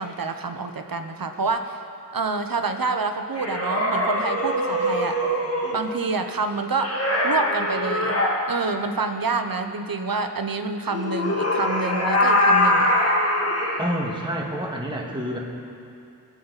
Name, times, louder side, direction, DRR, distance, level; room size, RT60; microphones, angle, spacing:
voice 1, 0.0-1.8 2.1-5.2 5.7-7.0 7.2-12.9, right 4 dB, 75° right, 7 dB, 0.9 m, -27 dB
sound 1, 3.4-5.8 6.8-8.3 10.9-13.8, left 1 dB, 45° left, 1.7 m, -22 dB
voice 2, 13.8-15.4, equal, 15° right, -2 dB, 1.9 m, -28 dB
21.0 x 8.5 x 4.1 m, 2.6 s
wide cardioid pair, 65°, 35 cm